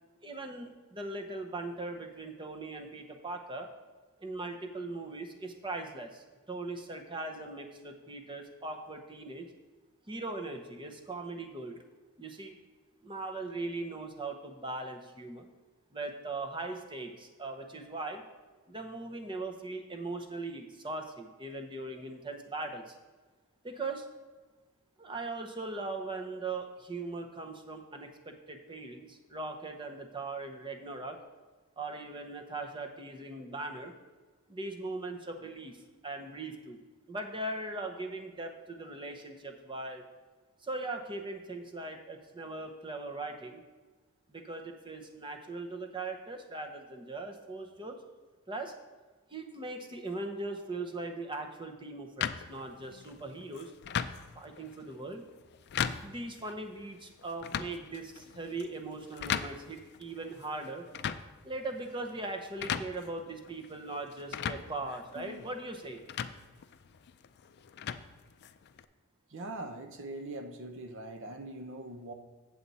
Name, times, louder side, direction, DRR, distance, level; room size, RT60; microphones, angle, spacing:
voice 1, 0.2-3.7 4.2-9.5 10.1-11.8 12.2-12.6 13.0-15.5 15.9-18.2 18.7-23.0 23.6-24.0 25.0-31.2 31.8-33.9 34.5-36.8 37.1-40.0 40.6-43.6 44.3-48.0 48.5-48.7 49.3-53.7 54.4-55.2 56.0-60.9 61.4-66.0, right 2 dB, 20° right, 4 dB, 0.8 m, -40 dB
sound 1, 52.2-68.8, left 8 dB, 50° left, 0.4 m, -40 dB
voice 2, 69.3-72.1, right 2 dB, 55° right, 6 dB, 0.7 m, -42 dB
8.0 x 7.6 x 4.1 m, 1.3 s
head